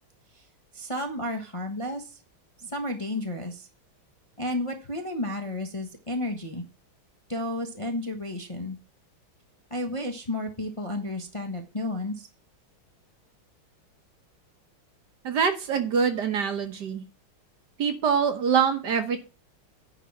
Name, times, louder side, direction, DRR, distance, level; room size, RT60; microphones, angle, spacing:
voice 1, 0.7-2.2 2.6-3.7 4.4-6.6 7.3-8.8 9.7-12.3, left 1 dB, 20° left, 2 dB, 0.9 m, -32 dB
voice 2, 15.2-17.0 17.8-19.2, right 6 dB, 60° right, 7 dB, 1.6 m, -24 dB
10.0 x 4.1 x 7.1 m, 0.33 s
omnidirectional pair, 2.2 m